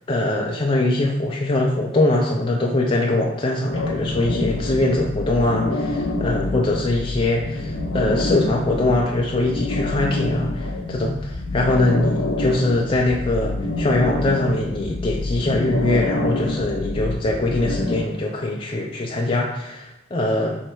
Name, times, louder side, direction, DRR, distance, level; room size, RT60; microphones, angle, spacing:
voice 1, 0.1-20.6, left 2 dB, 25° left, -1 dB, 0.3 m, -22 dB
sound 1, 3.7-18.0, left 2 dB, 75° left, 0.5 m, -26 dB
3.2 x 3.1 x 4.4 m, 0.88 s
head